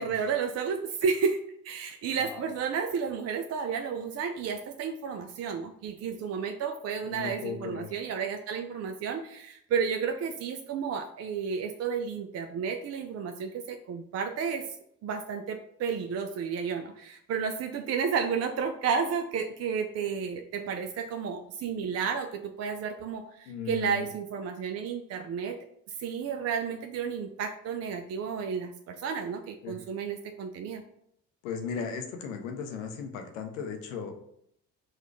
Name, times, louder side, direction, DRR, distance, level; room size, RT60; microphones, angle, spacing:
voice 1, 0.0-1.4 1.6-14.6 15.0-25.6 26.0-30.8, right 6 dB, 40° right, 6 dB, 0.4 m, -32 dB
voice 2, 2.1-2.4 7.0-7.9 23.5-24.1 29.6-29.8 31.4-34.1, left 6 dB, 85° left, 5 dB, 0.6 m, -36 dB
4.0 x 2.3 x 4.5 m, 0.73 s
hypercardioid pair, 45°, 38 cm